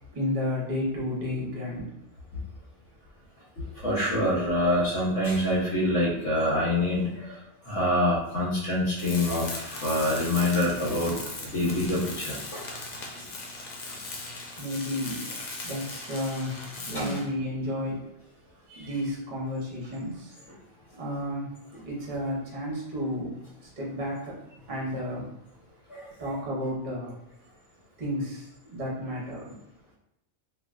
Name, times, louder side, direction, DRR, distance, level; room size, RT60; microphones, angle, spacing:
voice 1, 0.1-1.9 14.6-15.3 15.6-18.0 18.7-20.4 21.0-21.5 21.8-25.3 26.2-27.1 28.0-29.5, left 1 dB, 40° right, -4 dB, 0.8 m, -32 dB
voice 2, 3.8-7.4 7.6-12.6 16.9-17.2 25.9-26.4, left 1 dB, 65° left, -7 dB, 1.0 m, -26 dB
Tools, 9.0-17.4, left 2 dB, 80° left, 0.4 m, -38 dB
3.1 x 2.5 x 2.4 m, 0.88 s
omnidirectional pair, 1.4 m